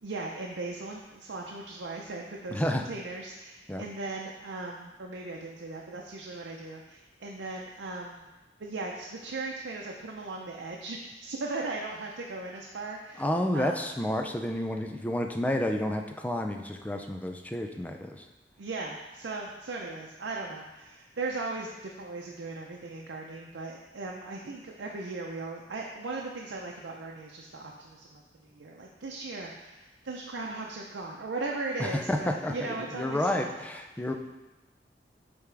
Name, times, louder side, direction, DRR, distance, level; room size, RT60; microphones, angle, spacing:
voice 1, 0.0-8.2 8.6-13.2 13.5-13.8 18.6-33.5, right 3 dB, 90° right, -1 dB, 0.6 m, -38 dB
voice 2, 2.5-2.8 3.7-3.8 13.2-18.3 31.8-34.1, left 1 dB, 10° left, 4 dB, 0.4 m, -30 dB
8.4 x 3.5 x 3.4 m, 1.1 s
head